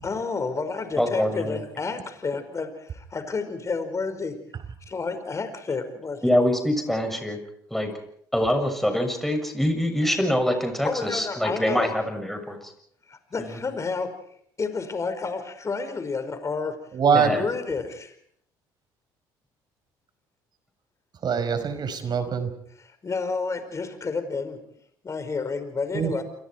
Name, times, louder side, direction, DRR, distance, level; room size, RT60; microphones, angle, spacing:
voice 1, 0.0-4.4 4.9-6.2 10.8-11.9 13.1-14.1 14.6-16.7 17.1-18.2 22.8-24.6 25.0-26.2, left 4 dB, 30° left, 8 dB, 5.3 m, -30 dB
voice 2, 1.0-1.6 6.2-7.4 7.7-7.9 8.3-12.7 13.4-13.6 17.1-17.5, left 1 dB, ahead, 5 dB, 7.1 m, -25 dB
voice 3, 16.9-17.3 21.2-22.5 25.9-26.2, right 6 dB, 50° right, 10 dB, 5.2 m, -23 dB
29.5 x 23.0 x 4.7 m, 0.66 s
supercardioid pair, 70°, 9 cm